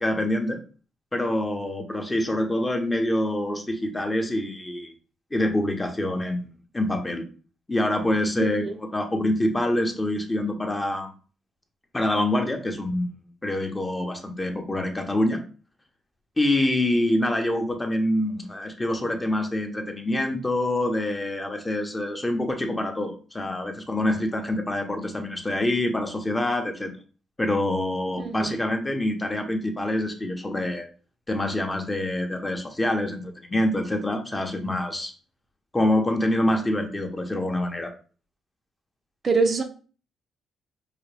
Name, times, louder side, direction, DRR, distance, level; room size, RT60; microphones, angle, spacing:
voice 1, 0.0-0.6 1.1-4.9 5.3-6.4 6.7-7.2 7.7-8.6 8.9-11.1 11.9-13.2 13.4-15.4 16.4-26.9 27.4-30.9 31.3-35.1 35.7-37.9, left 1 dB, 15° left, 4 dB, 0.8 m, -26 dB
voice 2, 8.4-8.7 28.2-28.6 39.2-39.6, right 4 dB, 40° right, 5 dB, 0.6 m, -24 dB
4.7 x 2.2 x 3.3 m, 0.38 s
cardioid pair, 90°, 0 cm